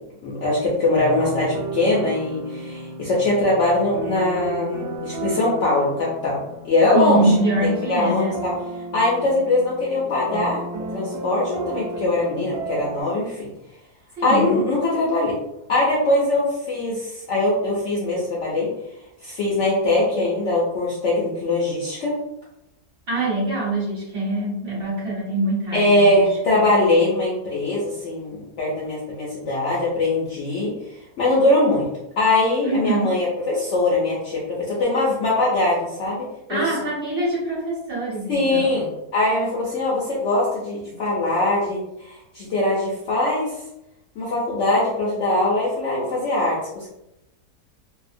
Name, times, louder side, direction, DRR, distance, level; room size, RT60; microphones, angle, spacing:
voice 1, 0.2-8.5 8.9-10.6 10.9-13.5 14.2-15.3 15.7-18.7 19.2-22.2 25.7-30.7 31.2-31.9 32.2-36.6 38.3-43.5 44.2-46.9, left 2 dB, 65° left, -5 dB, 0.7 m, -21 dB
sound 1, 1.0-13.0, right 3 dB, 70° right, 1.0 m, -33 dB
voice 2, 6.9-8.3 14.2-14.6 23.1-26.3 32.6-33.1 36.5-38.9, right 2 dB, 45° right, -8 dB, 1.0 m, -24 dB
2.7 x 2.0 x 2.5 m, 0.86 s
omnidirectional pair, 1.7 m